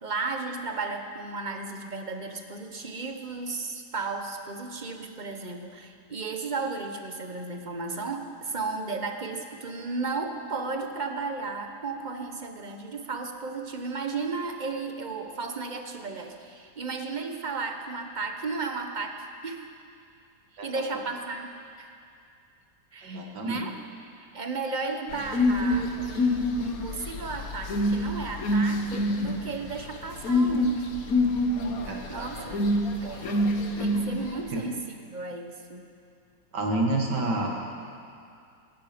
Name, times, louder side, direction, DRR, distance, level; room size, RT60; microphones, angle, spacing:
voice 1, 0.0-19.1 19.4-19.7 20.6-21.9 22.9-23.7 24.2-30.9 31.6-31.7 32.1-34.8 35.1-35.8, right 4 dB, 35° right, 4 dB, 0.9 m, -34 dB
voice 2, 20.6-21.0 23.0-23.7 31.9-32.6 34.5-34.7 36.5-37.5, right 2 dB, 90° right, 0 dB, 2.4 m, -30 dB
sound 1, 25.1-34.4, left 1 dB, 60° left, 1.5 m, -27 dB
17.5 x 12.5 x 5.1 m, 2.4 s
omnidirectional pair, 1.8 m